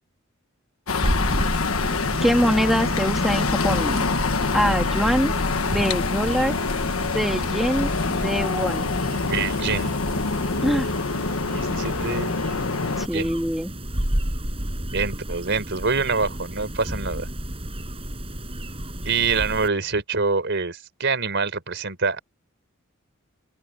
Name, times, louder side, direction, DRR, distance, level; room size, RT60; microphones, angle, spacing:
sound 1, 0.9-13.1, left 4 dB, 90° left, 1.4 m, -25 dB
sound 2, 1.0-19.7, equal, 30° right, 6.2 m, -32 dB
voice 1, 2.2-4.1 4.5-5.3 5.7-6.5 7.1-8.9 10.6-10.9 13.0-13.7, equal, ahead, 2.3 m, -23 dB
voice 2, 9.3-9.9 11.5-12.3 13.1-13.3 14.9-17.3 19.0-22.2, right 4 dB, 60° right, 4.4 m, -25 dB
open air
head